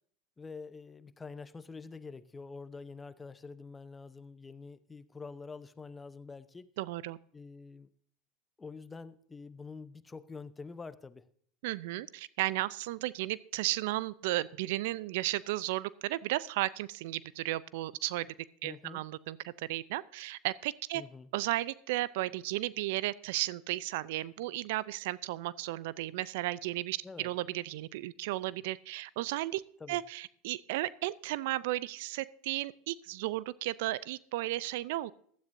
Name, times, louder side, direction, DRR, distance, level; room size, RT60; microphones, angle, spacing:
voice 1, 0.4-6.7 7.3-7.9 8.6-11.2 18.6-19.0 20.9-21.3 27.0-27.3 29.8-30.0, left 4 dB, 20° left, 14 dB, 0.8 m, -46 dB
voice 2, 6.8-7.2 11.6-18.3 18.6-21.0 21.3-29.6 29.9-35.1, right 17 dB, 70° right, 20 dB, 0.4 m, -34 dB
15.5 x 12.5 x 2.6 m, 0.62 s
hypercardioid pair, 90°, 0 cm